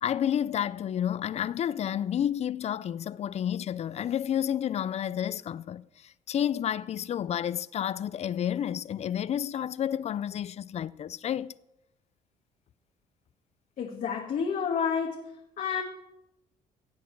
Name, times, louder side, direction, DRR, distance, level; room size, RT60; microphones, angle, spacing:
voice 1, 0.0-11.5, left 10 dB, 45° left, 0.4 m, -30 dB
voice 2, 13.8-15.8, left 6 dB, 60° left, 1.5 m, -30 dB
15.5 x 8.5 x 4.6 m
cardioid pair, 90°, 15 cm